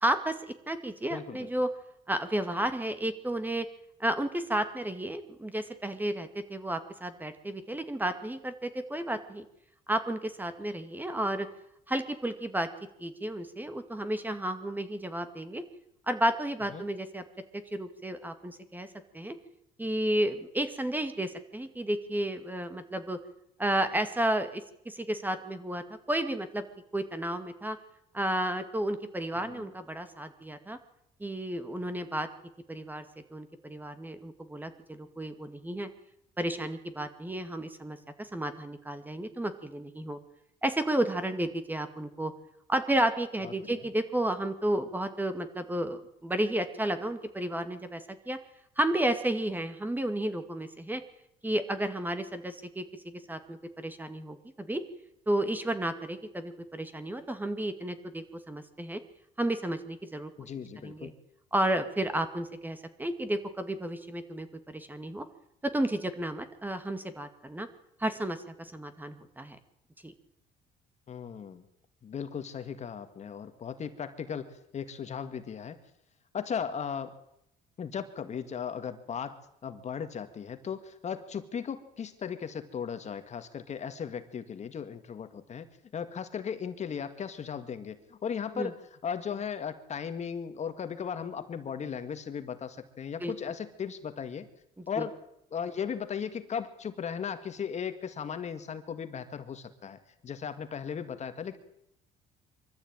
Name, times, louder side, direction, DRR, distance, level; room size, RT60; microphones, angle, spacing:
voice 1, 0.0-0.4 0.7-1.7 2.1-3.7 4.0-9.4 9.9-11.5 11.9-12.7 13.0-15.6 16.1-17.2 17.5-18.9 19.1-19.4 19.8-23.2 23.6-26.6 26.9-27.8 28.1-30.8 31.2-32.3 32.7-33.0 33.3-35.9 36.4-40.2 40.6-42.3 42.7-48.4 48.8-51.0 51.4-52.9 53.3-54.8 55.3-59.0 59.4-60.3 60.8-61.1 61.5-65.2 65.6-67.7 68.0-69.6 70.0-70.1 88.6-88.7 93.2-93.3 95.0-95.1, right 1 dB, 10° right, 9 dB, 2.2 m, -32 dB
voice 2, 1.1-1.5 16.7-16.8 29.3-29.7 43.4-43.9 60.4-61.1 71.1-71.6 72.0-75.8 76.3-77.2 77.8-85.7 85.9-94.5 94.9-95.1 95.5-101.6, left 7 dB, 40° left, 9 dB, 2.0 m, -37 dB
23.5 x 14.5 x 9.0 m, 0.78 s
cardioid pair, 110°, 17 cm